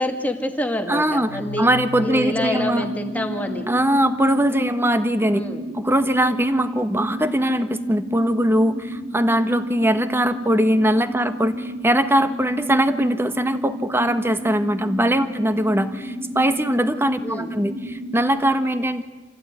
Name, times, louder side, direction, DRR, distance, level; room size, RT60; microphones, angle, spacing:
voice 1, 0.0-1.7 2.0-3.7 5.3-5.6 17.2-17.5, left 1 dB, 10° left, 4 dB, 2.2 m, -26 dB
voice 2, 0.9-1.3 1.6-2.9 3.7-5.4 5.7-19.0, right 1 dB, 10° right, 9 dB, 1.4 m, -21 dB
sound 1, 1.1-4.0, left 1 dB, 80° right, 5.1 m, -38 dB
sound 2, 2.3-18.3, equal, 60° right, 5.7 m, -33 dB
27.0 x 16.0 x 9.8 m, 1.3 s
head